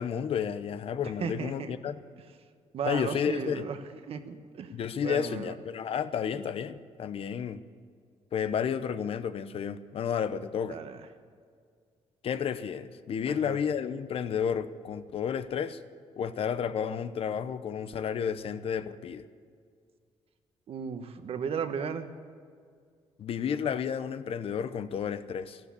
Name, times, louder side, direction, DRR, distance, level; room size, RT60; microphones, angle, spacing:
voice 1, 0.0-2.0 2.9-3.7 4.7-7.6 8.3-10.8 12.2-15.8 16.2-19.2 23.2-25.6, left 7 dB, 60° left, 0.8 m, -31 dB
voice 2, 1.2-1.7 2.7-3.8 4.1-4.7 5.0-5.5 10.7-11.0 13.3-13.6 20.7-22.1, right 6 dB, 65° right, 1.2 m, -35 dB
13.5 x 12.0 x 8.4 m
cardioid pair, 95°, 11 cm